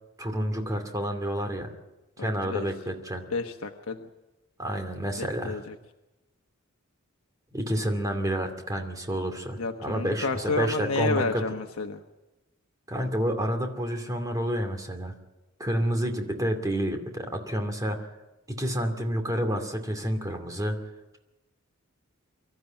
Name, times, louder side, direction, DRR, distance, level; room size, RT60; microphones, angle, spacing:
voice 1, 0.2-1.7 2.2-3.2 4.6-5.6 7.5-11.4 12.9-15.1 15.6-18.1 18.6-20.8, equal, 15° right, 5 dB, 2.5 m, -29 dB
voice 2, 2.2-2.7 3.3-4.1 5.2-5.7 9.5-12.0, left 4 dB, 80° left, 4 dB, 1.1 m, -30 dB
24.5 x 13.5 x 8.9 m, 1.0 s
head